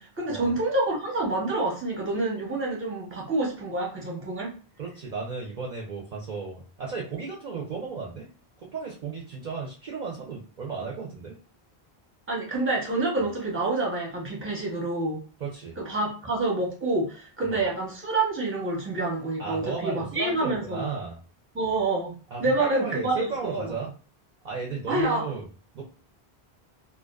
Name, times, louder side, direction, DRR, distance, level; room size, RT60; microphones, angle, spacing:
voice 1, 0.0-4.5 12.3-15.2 15.8-20.9 21.5-22.1 22.4-23.7 24.9-25.2, right 2 dB, 15° right, -2 dB, 0.6 m, -27 dB
voice 2, 4.8-8.3 8.6-11.4 15.4-15.8 17.4-17.5 19.4-21.2 22.3-23.9 24.4-25.5 25.7-25.8, right 4 dB, 55° right, -1 dB, 0.5 m, -34 dB
2.4 x 2.2 x 2.2 m, 0.37 s
omnidirectional pair, 1.1 m